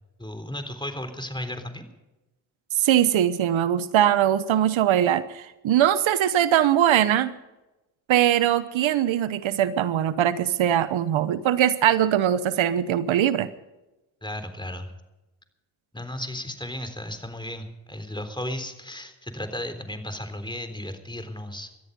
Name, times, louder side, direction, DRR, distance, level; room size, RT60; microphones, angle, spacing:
voice 1, 0.2-1.8 14.2-14.9 15.9-21.7, left 1 dB, 10° left, 8 dB, 3.6 m, -34 dB
voice 2, 2.8-7.3 8.1-13.5, right 11 dB, 80° right, 14 dB, 1.0 m, -21 dB
19.0 x 13.5 x 5.3 m, 1.0 s
supercardioid pair, 50°, 46 cm